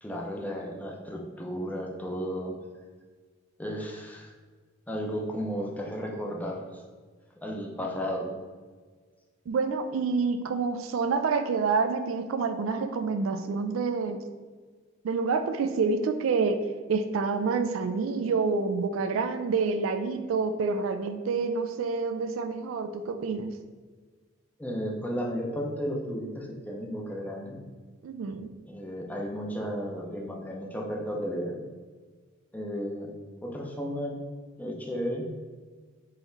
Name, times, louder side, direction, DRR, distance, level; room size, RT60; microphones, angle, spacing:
voice 1, 0.0-2.6 3.6-4.3 4.9-6.8 7.4-8.3 24.6-27.6 28.6-31.6 32.5-33.1 33.4-34.2 34.6-35.3, equal, 10° left, 0 dB, 0.6 m, -33 dB
voice 2, 9.5-14.2 15.0-16.6 16.9-23.5 28.0-28.5, right 4 dB, 75° right, 8 dB, 0.3 m, -28 dB
4.1 x 3.0 x 3.9 m, 1.5 s
head